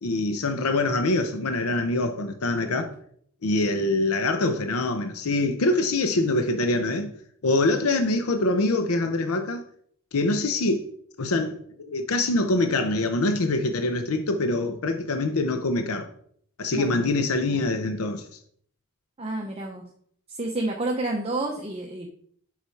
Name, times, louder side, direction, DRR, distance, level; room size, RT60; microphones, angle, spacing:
voice 1, 0.0-2.9 3.4-7.1 7.4-9.6 10.1-10.9 11.2-11.6 11.9-16.1 16.6-18.2, left 2 dB, 85° left, 0.7 m, -24 dB
voice 2, 16.7-17.1 17.5-17.6 19.2-19.8 20.3-22.1, right 2 dB, 30° right, 0.7 m, -30 dB
6.8 x 4.9 x 4.5 m
head